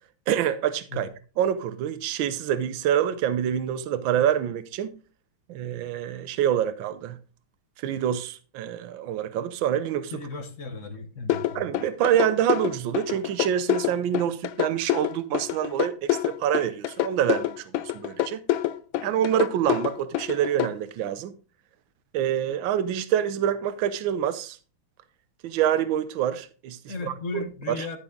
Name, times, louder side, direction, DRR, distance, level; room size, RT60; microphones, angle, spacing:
voice 1, 0.3-1.1 1.4-4.9 5.5-7.2 7.8-10.1 11.5-18.4 19.0-21.3 22.1-24.6 25.4-26.9 27.3-27.9, right 10 dB, 80° right, 1.5 m, -26 dB
voice 2, 10.1-11.7 26.8-28.0, left 3 dB, 45° left, 1.4 m, -35 dB
sound 1, 11.3-20.7, left 13 dB, 90° left, 1.5 m, -26 dB
12.5 x 6.1 x 3.8 m
omnidirectional pair, 2.2 m